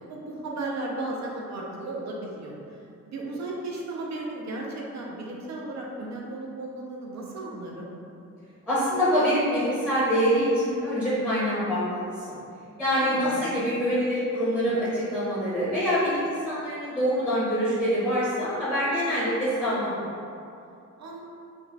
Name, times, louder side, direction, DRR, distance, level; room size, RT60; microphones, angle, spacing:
voice 1, 0.0-7.9 13.0-13.4 21.0-21.2, right 2 dB, 65° right, -2 dB, 0.5 m, -35 dB
voice 2, 8.7-12.4 12.8-20.1, equal, 5° right, -11 dB, 0.7 m, -25 dB
2.4 x 2.3 x 3.1 m, 2.6 s
wide cardioid pair, 130°, 30 cm